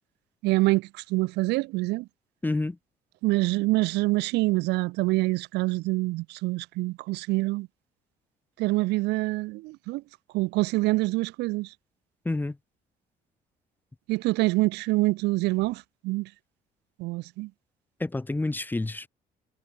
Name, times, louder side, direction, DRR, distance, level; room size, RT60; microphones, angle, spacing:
voice 1, 0.4-2.1 3.2-7.7 8.6-10.0 10.3-11.7 14.1-16.3 17.0-17.5, right 21 dB, 85° right, 0.6 m, -26 dB
voice 2, 2.4-2.8 12.2-12.6 18.0-19.1, left 2 dB, 10° left, 1.0 m, -28 dB
cardioid pair, 110°, 17 cm